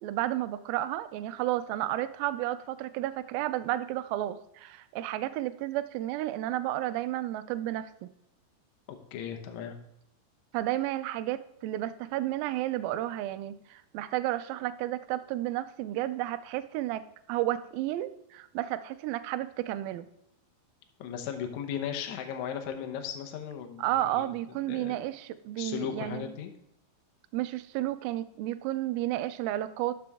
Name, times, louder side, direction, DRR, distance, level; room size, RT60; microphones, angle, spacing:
voice 1, 0.0-8.1 10.5-20.1 23.8-26.3 27.3-30.0, right 14 dB, 80° right, 12 dB, 2.2 m, -32 dB
voice 2, 8.9-9.8 21.0-25.0 25.6-26.5, left 8 dB, 80° left, 5 dB, 1.7 m, -37 dB
12.5 x 6.1 x 3.5 m, 0.78 s
omnidirectional pair, 4.6 m